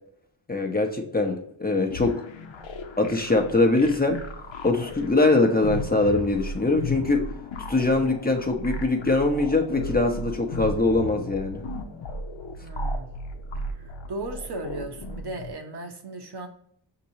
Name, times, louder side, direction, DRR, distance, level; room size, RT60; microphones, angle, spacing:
voice 1, 0.5-2.1 3.0-4.2 4.6-7.3 7.7-11.6, left 2 dB, 20° left, 3 dB, 0.8 m, -22 dB
sound 1, 1.9-15.5, left 1 dB, 70° left, 0.8 m, -35 dB
voice 2, 12.6-13.1 13.7-16.5, right 2 dB, 55° right, 3 dB, 1.0 m, -36 dB
6.0 x 2.9 x 2.8 m, 0.70 s
cardioid pair, 60°, 47 cm